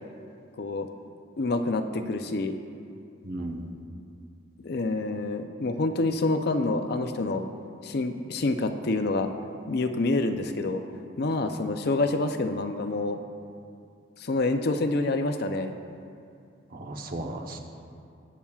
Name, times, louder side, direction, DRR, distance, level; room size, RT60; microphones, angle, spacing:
voice 1, 0.6-0.9 1.4-2.6 4.6-7.4 7.8-9.3 9.7-10.8 11.2-13.2 14.2-15.8, left 2 dB, 60° left, 7 dB, 0.5 m, -27 dB
voice 2, 3.2-3.7 16.7-17.6, right 1 dB, 50° right, 2 dB, 0.9 m, -35 dB
21.0 x 7.0 x 2.4 m, 2.4 s
head